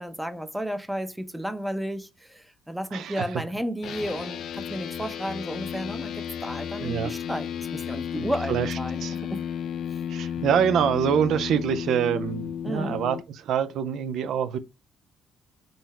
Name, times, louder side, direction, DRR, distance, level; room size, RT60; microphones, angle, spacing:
voice 1, 0.0-9.0 9.3-9.4 9.9-10.0 12.6-13.0, equal, 5° right, 0.6 m, -33 dB
voice 2, 2.9-3.2 6.8-7.1 8.2-8.7 9.0-9.2 10.1-14.6, right 8 dB, 75° right, 0.3 m, -25 dB
sound 1, 3.8-13.2, left 8 dB, 75° left, 0.3 m, -33 dB
3.8 x 2.0 x 4.2 m
cardioid pair, 90°, 0 cm